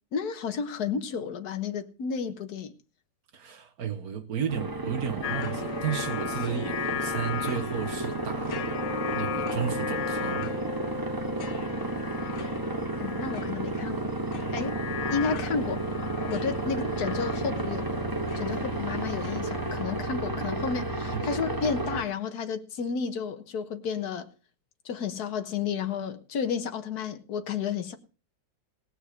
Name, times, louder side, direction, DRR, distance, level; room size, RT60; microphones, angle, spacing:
voice 1, 0.1-2.7 12.9-14.1 14.5-14.8 15.1-15.8 16.3-17.9 18.3-24.3 24.8-28.0, left 6 dB, 60° left, 1.7 m, -32 dB
voice 2, 3.3-8.8 9.1-10.5 14.5-14.6 21.1-21.3, right 8 dB, 55° right, 1.6 m, -33 dB
sound 1, 4.5-22.0, right 2 dB, 15° right, 1.0 m, -32 dB
sound 2, 5.2-19.8, left 8 dB, 75° left, 1.6 m, -37 dB
18.0 x 6.3 x 6.4 m
omnidirectional pair, 1.9 m